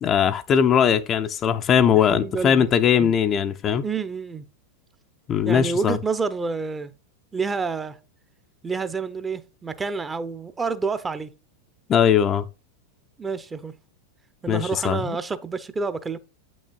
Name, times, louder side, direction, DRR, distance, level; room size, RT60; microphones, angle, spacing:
voice 1, 0.0-3.8 5.3-6.0 11.9-12.5 14.5-15.2, left 8 dB, 30° left, 0.5 m, -20 dB
voice 2, 1.9-2.7 3.0-3.1 3.8-4.4 5.4-6.9 7.3-8.0 8.6-11.3 13.2-13.7 14.4-16.2, right 4 dB, 15° right, 0.7 m, -28 dB
8.4 x 6.2 x 2.3 m
figure-of-eight pair, 90°, 0 cm